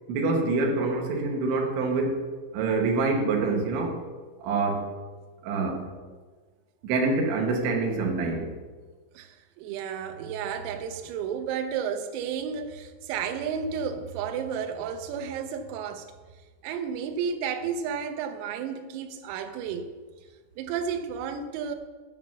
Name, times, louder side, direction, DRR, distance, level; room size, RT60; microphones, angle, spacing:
voice 1, 0.1-2.2 2.5-4.0 4.4-4.9 5.4-5.9 6.8-8.5, right 3 dB, 70° right, 3.4 m, -26 dB
voice 2, 9.2-16.1 16.6-19.9 20.6-21.8, right 7 dB, 85° right, 3.5 m, -32 dB
9.6 x 6.9 x 5.9 m
omnidirectional pair, 5.9 m